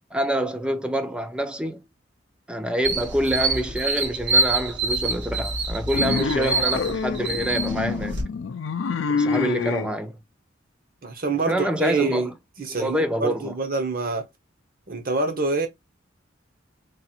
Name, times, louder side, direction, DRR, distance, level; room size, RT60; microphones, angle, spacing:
voice 1, 0.1-1.8 2.5-8.2 9.1-10.2 11.5-12.3 12.8-13.5, right 1 dB, 5° right, 0.4 m, -26 dB
sound 1, 2.8-8.2, right 3 dB, 70° right, 1.5 m, -26 dB
sound 2, 5.9-9.9, left 5 dB, 85° left, 0.4 m, -26 dB
voice 2, 11.0-12.3 12.6-14.3 14.9-15.7, right 3 dB, 50° right, 1.0 m, -26 dB
3.3 x 2.5 x 4.2 m
head